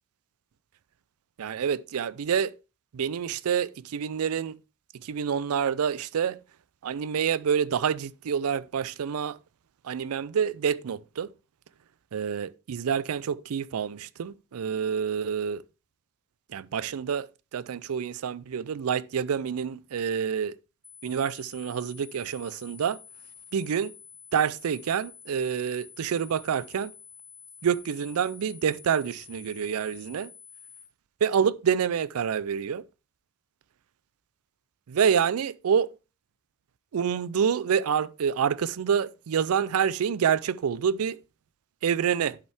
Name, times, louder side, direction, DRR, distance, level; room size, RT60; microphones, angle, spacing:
voice 1, 1.4-2.5 2.9-4.6 5.0-6.4 6.8-9.4 9.8-11.3 12.1-15.6 16.5-17.3 17.5-20.5 21.0-23.0 23.5-23.9 24.3-26.9 27.6-30.3 31.2-32.8 34.9-35.9 36.9-41.2 41.8-42.4, right 7 dB, 80° right, 0.4 m, -27 dB
sound 1, 20.8-30.8, left 6 dB, 5° right, 2.0 m, -50 dB
11.0 x 5.4 x 3.5 m
head